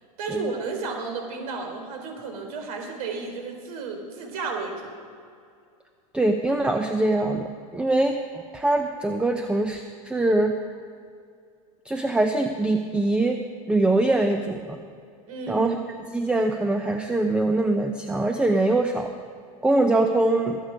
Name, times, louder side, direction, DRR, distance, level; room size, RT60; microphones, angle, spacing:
voice 1, 0.2-4.9 15.3-15.8, right 4 dB, 70° right, 3 dB, 3.9 m, -32 dB
voice 2, 6.1-10.6 11.8-13.4 13.7-14.8 15.5-15.8 16.1-19.1 19.6-20.6, right 2 dB, 5° right, 5 dB, 0.7 m, -23 dB
21.5 x 8.3 x 5.2 m, 2.3 s
supercardioid pair, 120°, 19 cm